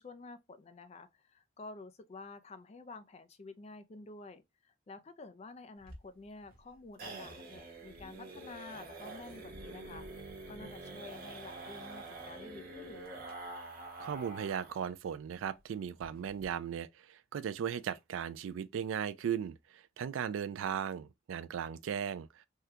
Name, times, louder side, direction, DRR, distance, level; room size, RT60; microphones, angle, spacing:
voice 1, 0.0-13.2, left 3 dB, 30° left, 0.3 m, -50 dB
sound 1, 5.8-14.9 15.2-15.3 15.6-15.7 16.0-16.5, right 2 dB, 45° right, 0.8 m, -47 dB
voice 2, 14.0-22.4, right 8 dB, 80° right, 0.3 m, -37 dB
3.6 x 2.2 x 2.7 m
head